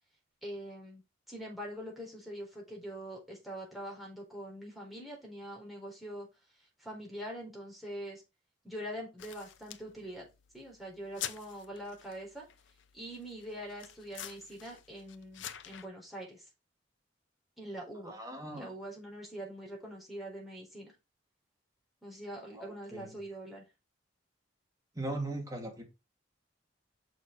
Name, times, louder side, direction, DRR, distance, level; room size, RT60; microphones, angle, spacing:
voice 1, 0.4-6.3 6.6-8.2 8.6-10.3 10.5-12.4 12.9-16.5 17.6-18.2 18.5-20.9 22.0-23.6, equal, ahead, 4.3 m, -44 dB
sound 1, 9.2-15.9, left 11 dB, 75° left, 0.7 m, -47 dB
voice 2, 18.0-18.7 22.5-23.1 24.9-25.8, right 2 dB, 20° right, 2.6 m, -39 dB
6.4 x 6.4 x 4.6 m
head